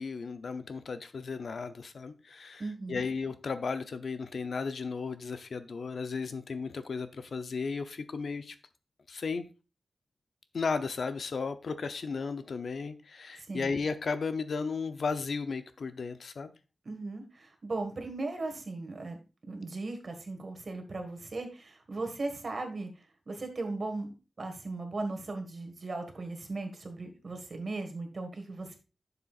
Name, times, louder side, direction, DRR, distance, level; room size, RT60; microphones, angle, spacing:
voice 1, 0.0-8.5 9.1-9.5 10.5-16.5, left 4 dB, 65° left, 0.6 m, -35 dB
voice 2, 2.6-3.1 13.5-13.7 16.8-19.2 19.5-22.9 23.3-28.8, right 3 dB, 45° right, 1.6 m, -37 dB
11.5 x 6.8 x 2.4 m
wide cardioid pair, 145°, 0 cm